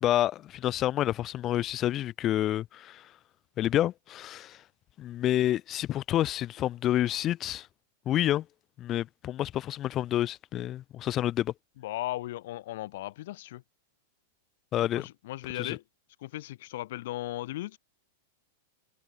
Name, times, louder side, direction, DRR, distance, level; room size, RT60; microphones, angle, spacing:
voice 1, 0.0-3.1 3.6-4.6 5.0-7.7 8.1-8.5 8.8-11.5 14.7-15.1 15.5-15.8, left 13 dB, 25° left, 0.4 m, -28 dB
voice 2, 11.8-13.6 14.9-15.8 16.2-17.8, left 16 dB, 60° left, 1.0 m, -36 dB
supercardioid pair, 150°, 0 cm